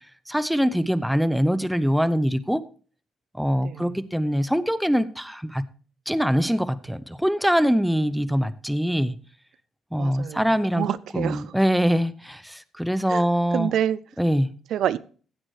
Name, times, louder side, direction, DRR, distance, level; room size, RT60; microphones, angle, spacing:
voice 1, 0.3-2.6 3.4-5.6 6.1-9.2 9.9-10.9 11.1-13.7 14.2-14.5, equal, ahead, 0.6 m, -23 dB
voice 2, 3.6-4.0 10.0-11.6 13.1-14.0 14.7-15.0, right 10 dB, 70° right, 0.5 m, -28 dB
15.5 x 8.6 x 3.2 m
cardioid pair, 115°, 0 cm